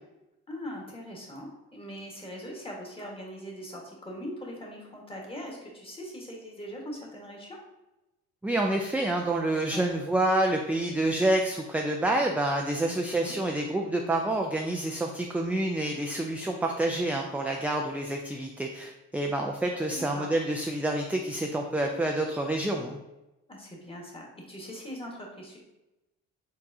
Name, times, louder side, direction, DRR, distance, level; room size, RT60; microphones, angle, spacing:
voice 1, 0.5-7.6 9.7-9.9 12.9-13.3 19.9-20.3 23.5-25.6, equal, 20° left, -2 dB, 1.4 m, -41 dB
voice 2, 8.4-23.0, right 1 dB, 5° right, 1 dB, 0.3 m, -28 dB
4.7 x 3.6 x 2.7 m, 0.98 s
cardioid pair, 90°, 30 cm